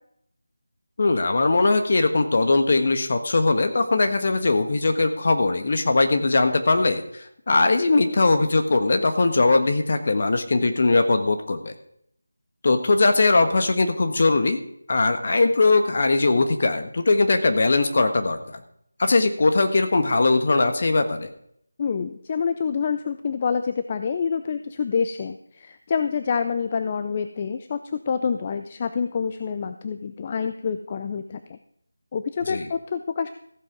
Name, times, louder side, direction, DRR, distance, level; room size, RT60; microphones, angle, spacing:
voice 1, 1.0-11.7 12.6-14.6 14.9-18.6 19.0-21.3 32.5-32.7, left 3 dB, 45° left, 6 dB, 1.4 m, -20 dB
voice 2, 21.8-31.6 32.1-33.3, left 6 dB, 25° left, 10 dB, 0.4 m, -27 dB
14.5 x 7.6 x 5.2 m, 0.69 s
figure-of-eight pair, 170°, 0 cm